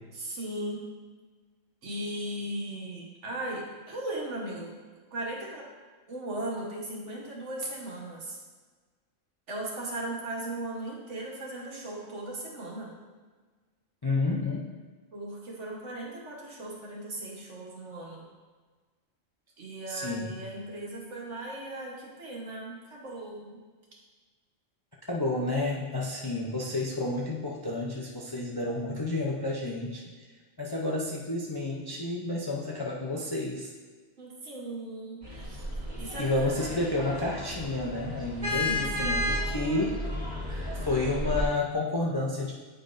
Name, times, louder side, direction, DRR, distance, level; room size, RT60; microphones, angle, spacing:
voice 1, 0.1-0.9 1.8-4.7 5.1-5.7 6.1-8.4 9.5-12.9 15.1-18.3 19.6-23.6 34.2-36.6 38.5-39.1 40.5-40.8, right 1 dB, 70° right, -2 dB, 1.5 m, -37 dB
voice 2, 14.0-14.7 19.9-20.3 25.1-30.0 30.6-33.7 36.2-40.0 40.7-42.5, left 2 dB, 30° left, -3 dB, 0.4 m, -30 dB
sound 1, 35.2-41.5, left 1 dB, 35° right, 1.6 m, -33 dB
8.6 x 4.9 x 2.6 m, 1.4 s
omnidirectional pair, 1.3 m